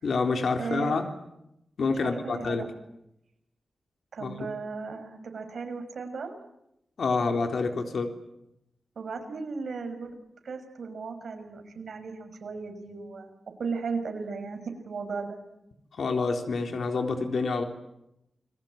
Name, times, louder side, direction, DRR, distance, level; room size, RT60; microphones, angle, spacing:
voice 1, 0.0-1.1 1.8-2.7 4.2-4.3 7.0-8.1 16.0-17.6, left 4 dB, 70° left, 4 dB, 3.9 m, -27 dB
voice 2, 0.6-1.0 2.0-2.7 4.1-6.4 8.9-10.2 10.4-13.3 13.6-15.4, right 4 dB, 70° right, 6 dB, 6.3 m, -36 dB
29.0 x 22.0 x 9.0 m, 0.83 s
wide cardioid pair, 130°, 0 cm